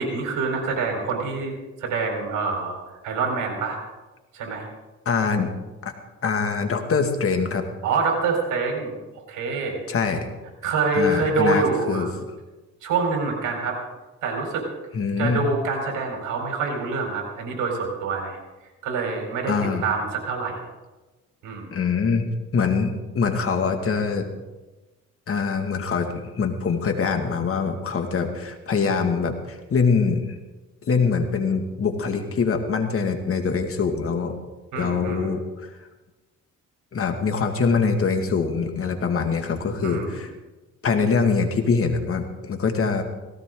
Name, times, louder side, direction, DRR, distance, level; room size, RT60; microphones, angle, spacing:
voice 1, 0.0-2.8 3.0-3.8 4.3-4.7 7.8-8.9 9.3-9.8 10.6-12.1 12.8-13.8 14.2-14.7 15.2-18.4 18.8-19.5 19.8-20.6 21.4-21.8 34.7-35.3 39.8-40.2, right 4 dB, 90° right, 2 dB, 4.6 m, -26 dB
voice 2, 5.1-5.5 5.8-5.9 6.2-7.6 9.9-10.3 10.9-12.1 14.9-15.4 19.5-19.8 21.7-22.3 22.5-24.3 25.3-30.2 30.9-34.3 34.8-35.7 36.9-40.3 40.8-43.0, left 5 dB, 45° left, 5 dB, 2.3 m, -23 dB
18.0 x 16.5 x 3.9 m, 1.1 s
cardioid pair, 90°, 30 cm